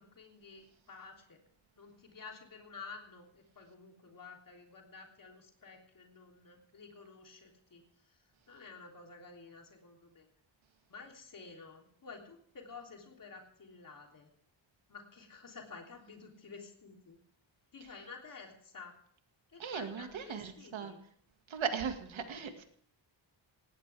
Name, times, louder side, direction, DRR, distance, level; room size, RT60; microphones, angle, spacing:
voice 1, 0.0-1.4 1.8-8.2 8.5-10.3 10.9-14.3 14.9-17.2 17.7-19.0 19.5-21.0, left 4 dB, 45° left, 2 dB, 3.4 m, -51 dB
voice 2, 19.6-20.9 21.5-22.6, right 6 dB, 75° right, 6 dB, 2.2 m, -38 dB
18.0 x 17.5 x 3.5 m, 0.63 s
wide cardioid pair, 175°, 47 cm